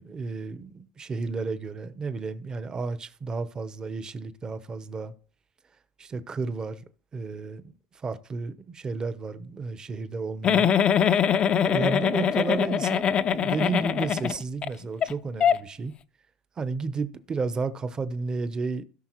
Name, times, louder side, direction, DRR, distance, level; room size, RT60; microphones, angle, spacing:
voice 1, 0.0-5.1 6.0-6.8 7.1-10.7 11.6-15.9 16.6-18.8, right 4 dB, 25° right, 0.9 m, -32 dB
Giggle, 10.4-14.7 15.0-15.1 15.4-15.6, left 8 dB, 35° left, 0.5 m, -23 dB
17.0 x 5.7 x 3.1 m
supercardioid pair, 115°, 3 cm